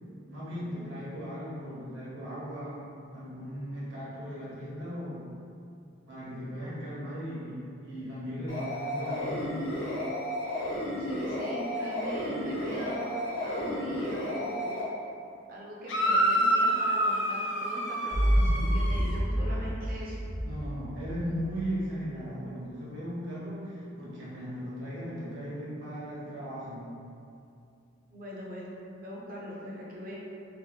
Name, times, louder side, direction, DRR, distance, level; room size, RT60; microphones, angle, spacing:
voice 1, 0.3-5.3 6.1-9.6 19.5-19.7 20.4-26.9, equal, 65° right, -9 dB, 1.0 m, -37 dB
sound 1, 8.5-14.8, left 1 dB, 85° left, 0.9 m, -33 dB
voice 2, 11.0-13.2 13.4-14.8 15.5-20.2 28.1-28.7 29.0-30.1, equal, 45° right, -5 dB, 0.5 m, -41 dB
sound 2, 15.9-19.1, right 1 dB, 65° left, 0.4 m, -27 dB
sound 3, 18.1-21.6, equal, 10° left, 0.4 m, -28 dB
3.0 x 2.1 x 3.3 m, 2.6 s
head